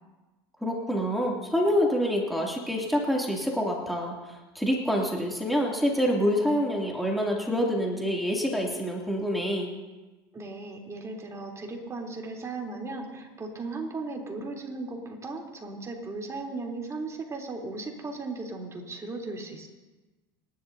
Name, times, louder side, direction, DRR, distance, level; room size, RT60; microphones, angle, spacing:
voice 1, 0.6-9.7, equal, ahead, -2 dB, 2.7 m, -27 dB
voice 2, 10.3-19.7, right 3 dB, 25° right, 0 dB, 3.4 m, -36 dB
29.0 x 11.5 x 2.7 m, 1.2 s
hypercardioid pair, 90°, 12 cm